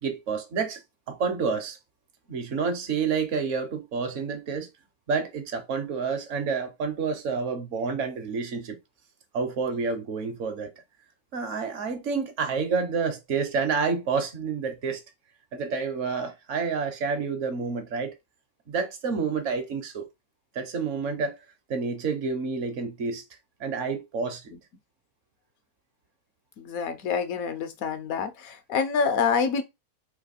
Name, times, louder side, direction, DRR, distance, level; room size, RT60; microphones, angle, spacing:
voice 1, 0.0-0.8 1.1-1.8 2.3-4.7 5.1-8.8 9.3-10.7 11.3-15.0 15.5-18.2 18.7-20.1 20.5-21.4 21.7-23.2 23.6-24.5, right 5 dB, 60° right, 1.0 m, -29 dB
voice 2, 26.6-29.6, left 6 dB, 75° left, 1.1 m, -27 dB
3.2 x 2.9 x 4.1 m
omnidirectional pair, 1.5 m